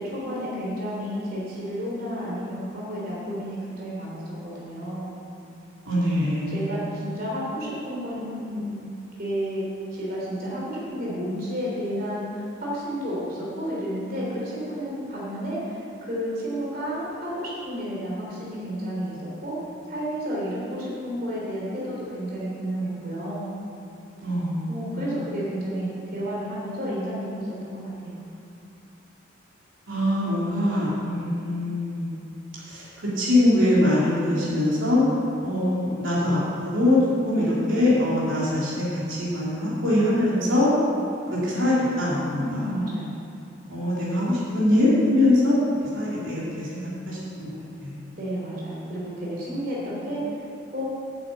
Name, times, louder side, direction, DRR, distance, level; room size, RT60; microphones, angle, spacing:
voice 1, 0.0-5.1 6.5-8.8 9.2-9.6 9.9-19.5 19.8-23.5 24.7-28.2 42.4-43.2 48.2-50.4 50.7-50.8, equal, 45° right, -6 dB, 3.1 m, -31 dB
voice 2, 5.8-6.7 24.2-25.1 29.9-32.2 32.7-35.0 35.4-37.0 37.2-40.7 41.3-42.7 43.7-45.6 45.9-47.5 47.8-47.9, left 1 dB, 75° right, -8 dB, 3.1 m, -23 dB
8.3 x 7.4 x 8.4 m, 2.7 s
head